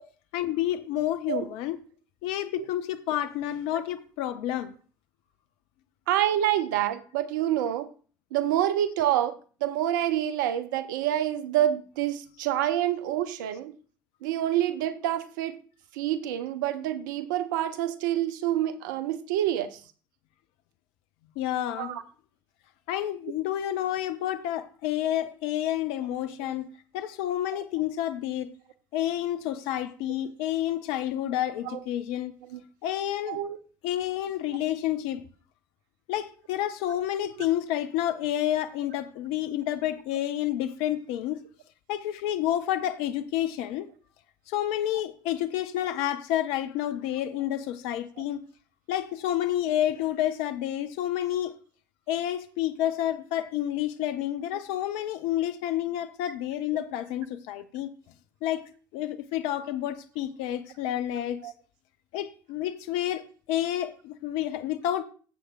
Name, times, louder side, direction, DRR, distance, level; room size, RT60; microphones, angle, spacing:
voice 1, 0.3-1.8 2.2-4.7 21.4-21.9 22.9-26.7 26.9-28.5 28.9-32.3 32.8-33.4 33.8-35.2 36.1-41.4 41.9-43.9 44.5-48.4 48.9-51.5 52.1-57.9 58.4-61.5 62.1-63.2 63.5-65.0, left 12 dB, 60° left, 0.7 m, -29 dB
voice 2, 6.1-7.9 8.3-9.3 9.6-13.7 14.2-15.6 15.9-19.8 21.8-22.0 31.7-31.8 32.5-32.6 33.3-33.6 61.4-61.5, right 12 dB, 70° right, 0.7 m, -27 dB
15.0 x 7.8 x 2.4 m
figure-of-eight pair, 55°, 11 cm